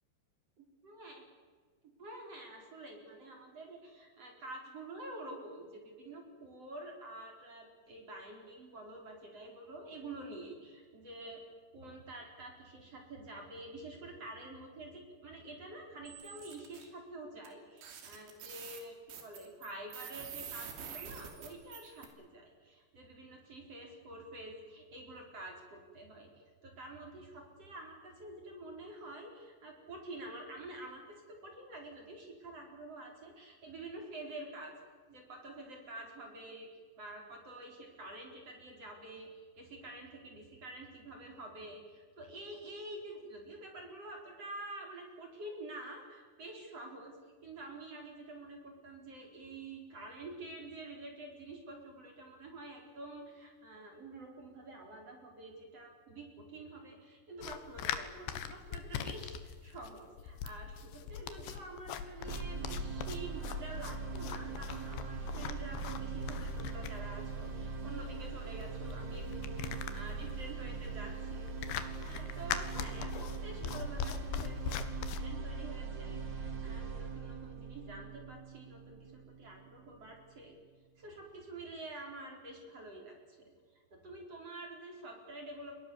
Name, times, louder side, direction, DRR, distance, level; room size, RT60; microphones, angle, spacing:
voice 1, 0.8-1.2 2.0-11.5 11.7-34.7 35.1-47.2 47.4-80.6 81.0-83.5 83.9-85.8, right 2 dB, 35° right, 1 dB, 5.2 m, -48 dB
sound 1, 16.1-16.8 17.4-17.5 17.8-22.1, right 8 dB, 90° right, 5.2 m, -47 dB
sound 2, 57.4-75.2, left 8 dB, 90° left, 3.7 m, -41 dB
sound 3, 62.2-80.2, right 4 dB, 50° right, 1.4 m, -41 dB
28.5 x 23.5 x 7.3 m, 1.5 s
omnidirectional pair, 4.9 m